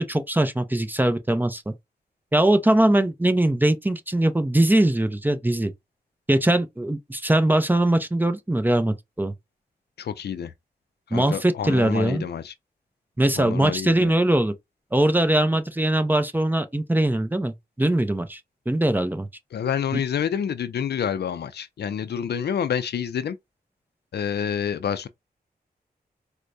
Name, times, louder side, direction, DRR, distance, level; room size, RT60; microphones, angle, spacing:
voice 1, 0.0-1.7 2.3-5.7 6.3-9.3 11.1-12.2 13.2-14.5 14.9-18.4 18.7-19.3 19.9-20.0, right 1 dB, 10° right, 0.5 m, -21 dB
voice 2, 10.0-10.5 11.1-12.5 13.4-14.2 19.5-23.4 24.1-25.1, left 8 dB, 75° left, 0.4 m, -28 dB
4.5 x 2.1 x 2.6 m
wide cardioid pair, 90°, 17 cm